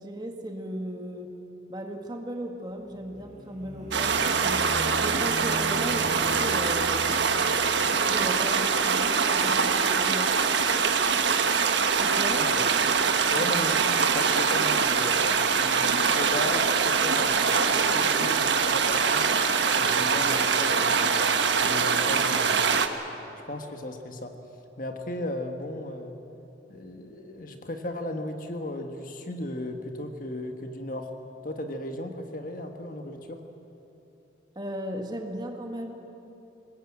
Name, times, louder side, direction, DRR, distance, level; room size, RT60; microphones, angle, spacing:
voice 1, 0.0-1.4 1.7-4.7 4.9-7.2 7.8-10.4 12.0-12.5 34.6-35.9, right 1 dB, 20° right, 3 dB, 1.8 m, -36 dB
sound 1, 2.8-8.5, equal, 40° right, 4.5 m, -39 dB
sound 2, 3.9-22.9, right 5 dB, 75° right, 1.3 m, -23 dB
voice 2, 13.3-15.2 15.5-19.3 19.8-21.2 21.6-23.1 23.5-24.3 24.8-26.2 26.7-31.1 31.4-33.4, left 1 dB, 45° left, 5 dB, 1.7 m, -36 dB
23.0 x 20.0 x 8.9 m, 3.0 s
head